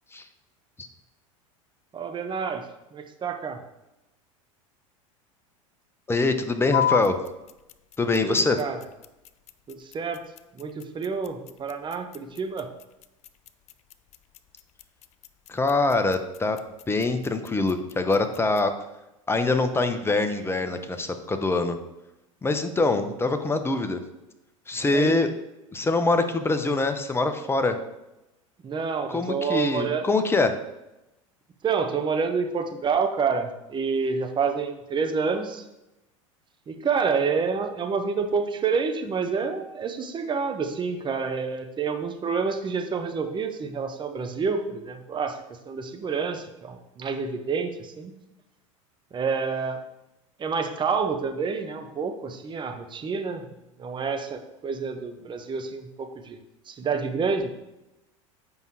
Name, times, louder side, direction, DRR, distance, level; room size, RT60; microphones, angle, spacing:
voice 1, 1.9-2.6 2.9-3.6 8.2-8.8 9.7-10.2 10.6-12.7 22.8-22.9 24.8-25.2 28.6-30.1 31.6-35.6 36.7-45.4 45.7-48.2 49.1-49.8 50.4-53.4 53.8-56.4 56.7-57.5, right 5 dB, 25° right, 5 dB, 1.1 m, -28 dB
voice 2, 6.1-7.2 8.0-8.6 15.5-16.6 16.9-18.7 19.3-21.8 22.4-24.0 24.7-25.3 25.7-27.7 29.1-30.5, left 3 dB, 15° left, 8 dB, 0.9 m, -24 dB
sound 1, 6.7-18.7, left 10 dB, 40° left, 0.5 m, -35 dB
8.1 x 5.3 x 4.8 m, 0.94 s
hypercardioid pair, 85°, 17 cm